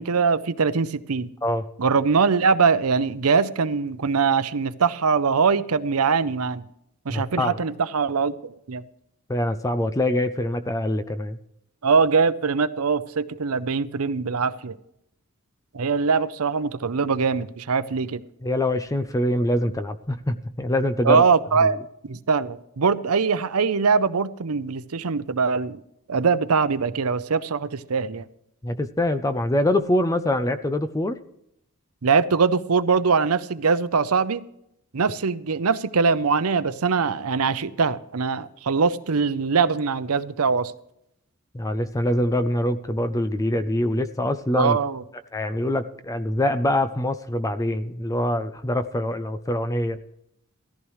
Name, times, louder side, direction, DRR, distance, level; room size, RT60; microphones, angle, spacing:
voice 1, 0.0-1.3 1.8-6.7 7.1-8.8 11.8-14.8 15.7-18.2 21.0-21.8 22.1-25.8 26.1-28.2 32.0-34.4 34.9-40.7 44.5-45.0, right 5 dB, 80° right, 0.7 m, -22 dB
voice 2, 7.1-7.6 9.3-11.4 18.4-21.2 21.6-21.7 28.6-31.2 41.5-44.8 45.3-50.0, left 1 dB, 15° left, 0.5 m, -24 dB
16.5 x 14.5 x 3.2 m
head